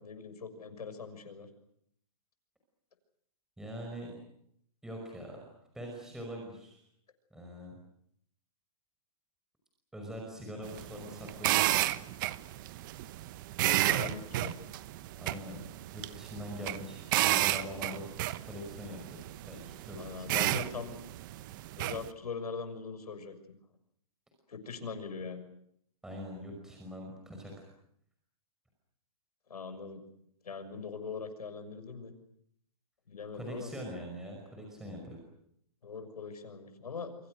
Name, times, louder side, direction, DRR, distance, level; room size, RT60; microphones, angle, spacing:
voice 1, 0.0-1.5 13.6-14.5 20.0-21.0 21.8-23.4 24.5-25.4 29.5-30.0 30.4-32.1 33.1-33.7 35.8-37.1, left 5 dB, 90° left, 9 dB, 6.4 m, -41 dB
voice 2, 3.6-4.2 4.8-5.5 5.7-6.8 7.3-7.7 9.9-11.7 15.2-15.6 15.9-18.1 18.5-19.2 19.5-20.9 26.0-27.7 33.3-35.2, equal, 5° right, 0 dB, 5.6 m, -43 dB
sound 1, 10.6-22.1, right 15 dB, 35° right, 1.0 m, -32 dB
29.0 x 25.0 x 6.5 m, 0.70 s
hypercardioid pair, 155°, 19 cm